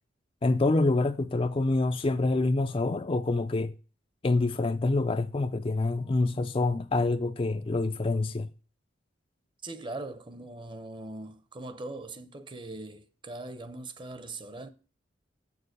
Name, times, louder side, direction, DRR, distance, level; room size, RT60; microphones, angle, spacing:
voice 1, 0.4-3.8 4.2-8.5, left 2 dB, 30° left, 0.4 m, -26 dB
voice 2, 9.6-14.7, right 2 dB, 25° right, 0.8 m, -41 dB
7.6 x 6.7 x 6.5 m
head